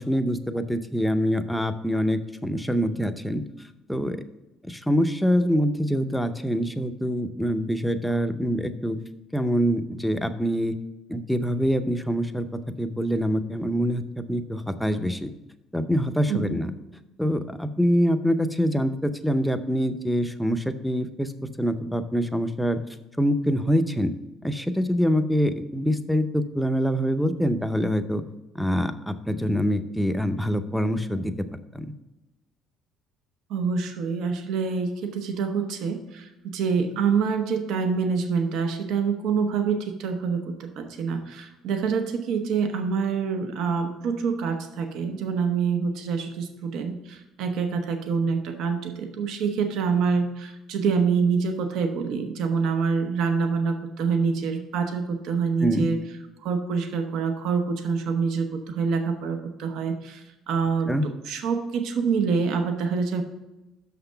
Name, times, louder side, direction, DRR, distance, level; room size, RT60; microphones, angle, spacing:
voice 1, 0.0-3.4 3.9-4.2 4.6-9.0 9.3-10.7 11.1-12.5 12.8-15.3 15.7-16.7 17.2-21.3 21.6-22.8 23.2-24.1 24.4-28.2 28.6-31.3 31.7-31.9 55.6-55.9 60.9-61.0, equal, ahead, 8 dB, 0.6 m, -25 dB
voice 2, 16.3-16.6 33.5-56.0 56.4-63.2, right 5 dB, 75° right, 6 dB, 0.9 m, -26 dB
6.3 x 5.9 x 5.7 m, 0.98 s
cardioid pair, 115°, 0 cm